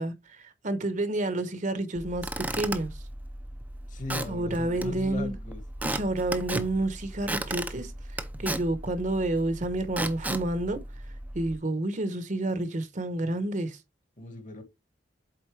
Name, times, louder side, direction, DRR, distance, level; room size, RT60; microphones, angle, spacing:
voice 1, 0.0-3.0 4.3-5.3 5.8-10.8 11.3-13.8, right 1 dB, 45° right, 1.0 m, -30 dB
Squeak / Wood, 1.9-11.6, right 1 dB, 10° right, 0.6 m, -36 dB
voice 2, 3.9-5.6 14.2-14.6, left 2 dB, 45° left, 1.8 m, -38 dB
7.9 x 4.1 x 3.3 m
head